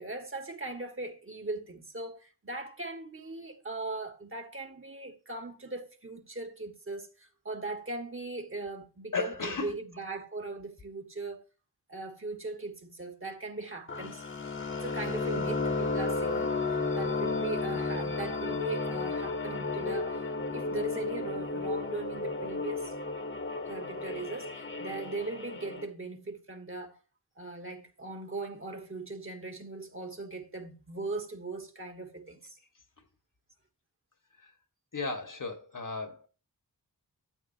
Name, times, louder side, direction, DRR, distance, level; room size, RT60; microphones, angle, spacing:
voice 1, 0.0-11.4 11.9-14.2 14.8-20.2 20.5-23.0 23.7-27.0 27.4-32.6, right 3 dB, 35° right, 2.0 m, -39 dB
voice 2, 9.1-9.7 34.4-34.5 34.9-36.3, left 4 dB, 55° left, 1.8 m, -35 dB
sound 1, 13.9-25.9, left 3 dB, 30° left, 1.5 m, -33 dB
12.5 x 8.3 x 2.9 m
cardioid pair, 55°, 38 cm